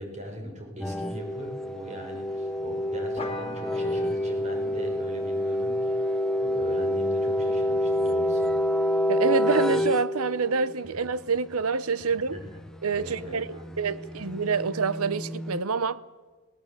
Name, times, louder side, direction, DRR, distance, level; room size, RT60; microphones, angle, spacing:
voice 1, 0.0-8.5 10.8-10.9 12.0-12.6 12.9-13.8, right 1 dB, 35° right, 5.7 m, -40 dB
sound 1, 0.8-10.8 12.9-15.6, left 1 dB, 5° left, 0.7 m, -28 dB
sound 2, 3.2-8.1, left 3 dB, 25° left, 2.7 m, -43 dB
voice 2, 9.1-12.4 12.8-13.4 13.8-16.0, right 5 dB, 85° right, 0.8 m, -27 dB
20.5 x 18.5 x 8.2 m
head